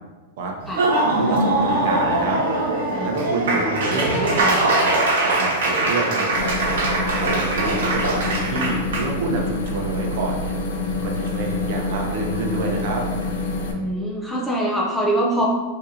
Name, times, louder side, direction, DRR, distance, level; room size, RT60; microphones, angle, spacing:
Laughter / Applause, 0.6-9.1, right 2 dB, 80° right, 1.0 m, -21 dB
voice 1, 1.2-2.4 3.0-6.3 7.1-10.5 11.0-13.1, right 3 dB, 55° right, 1 dB, 0.6 m, -28 dB
voice 2, 2.9-3.5 3.9-4.6 13.7-15.5, right 1 dB, 5° left, -4 dB, 0.4 m, -25 dB
sound 1, 6.3-13.7, left 3 dB, 80° left, 0.6 m, -27 dB
3.8 x 2.6 x 2.7 m, 1.2 s
supercardioid pair, 155°, 0 cm